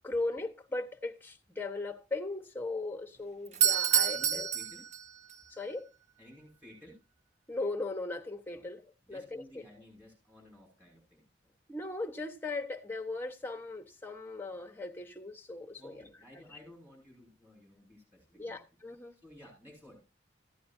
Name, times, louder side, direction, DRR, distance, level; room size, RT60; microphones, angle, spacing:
voice 1, 0.0-4.5 5.5-5.9 7.5-9.4 11.7-16.0 18.3-19.1, left 2 dB, 10° left, 1.0 m, -38 dB
Doorbell, 3.5-5.4, right 9 dB, 35° right, 0.6 m, -28 dB
voice 2, 4.1-4.8 6.2-7.0 8.5-8.7 9.1-11.5 15.8-18.6 19.2-20.0, left 1 dB, 10° right, 5.7 m, -55 dB
15.0 x 9.3 x 2.6 m
head